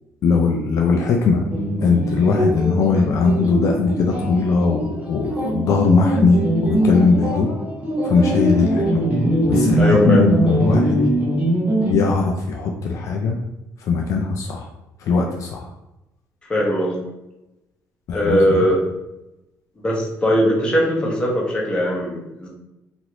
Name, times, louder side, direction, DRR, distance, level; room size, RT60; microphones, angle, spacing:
voice 1, 0.2-1.5 1.8-7.5 8.0-8.8 9.5-11.0 11.9-13.4 13.8-14.7 15.0-15.7 18.1-18.6, left 4 dB, 60° left, 1 dB, 0.4 m, -19 dB
sound 1, 1.5-11.9, right 1 dB, 25° right, 0.7 m, -21 dB
voice 2, 9.8-10.2 16.5-17.0 18.1-18.8 19.8-22.5, equal, 15° left, -3 dB, 0.9 m, -19 dB
3.0 x 2.5 x 2.9 m, 0.94 s
cardioid pair, 120°, 6 cm